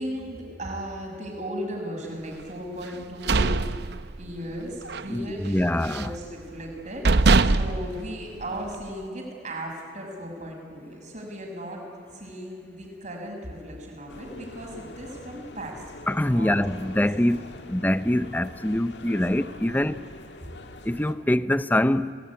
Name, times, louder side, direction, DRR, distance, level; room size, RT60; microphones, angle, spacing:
voice 1, 0.0-3.6 4.2-11.9 12.1-15.8 16.3-17.1 19.7-19.9, equal, 45° right, 6.3 m, -36 dB
sound 1, 2.9-4.5 4.8-5.1 5.5-6.2 6.7-6.8 7.0-8.9, right 3 dB, 65° right, 0.7 m, -22 dB
voice 2, 5.1-6.1 16.1-20.0 20.8-22.1, left 1 dB, 10° left, 0.6 m, -24 dB
sound 2, 14.1-21.1, left 2 dB, 75° left, 1.7 m, -44 dB
28.0 x 19.0 x 9.7 m
head